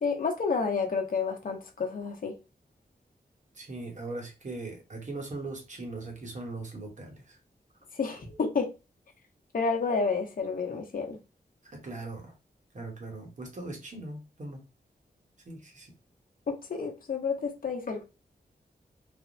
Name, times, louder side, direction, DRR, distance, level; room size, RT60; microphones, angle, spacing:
voice 1, 0.0-2.4 7.9-8.7 9.5-11.2 16.5-18.1, left 5 dB, 60° left, 0.7 m, -30 dB
voice 2, 3.5-7.4 11.6-12.3 12.7-14.6 15.5-15.9, right 2 dB, 50° right, 1.0 m, -40 dB
3.4 x 2.1 x 2.5 m
wide cardioid pair, 115°, 17 cm